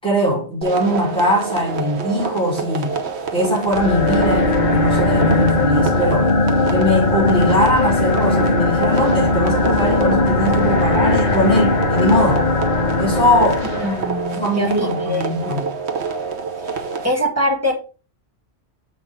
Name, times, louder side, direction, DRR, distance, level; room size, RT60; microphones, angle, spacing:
voice 1, 0.0-3.0 3.3-6.3 6.7-12.4 13.0-13.7 14.3-15.7, equal, 5° left, 4.4 m, -20 dB
sound 1, 0.6-17.1, right 5 dB, 75° right, 1.3 m, -27 dB
sound 2, 3.7-14.1, left 2 dB, 45° left, 1.0 m, -19 dB
voice 2, 13.7-15.3 17.0-17.7, equal, 15° right, 2.1 m, -22 dB
7.0 x 6.0 x 3.6 m
omnidirectional pair, 1.1 m